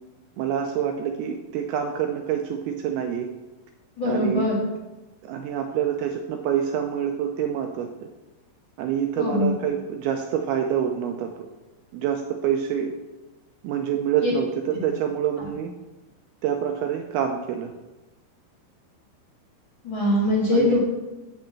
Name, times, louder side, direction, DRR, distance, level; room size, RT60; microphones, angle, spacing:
voice 1, 0.4-3.3 4.0-4.5 5.2-8.1 8.8-11.3 11.9-12.9 13.6-15.7 16.4-17.7 20.5-20.8, right 9 dB, 80° right, 4 dB, 2.3 m, -26 dB
voice 2, 4.0-4.6 9.2-9.5 14.2-14.3 19.8-20.8, left 1 dB, 40° left, -5 dB, 1.9 m, -22 dB
10.5 x 4.2 x 7.5 m, 1.1 s
omnidirectional pair, 5.0 m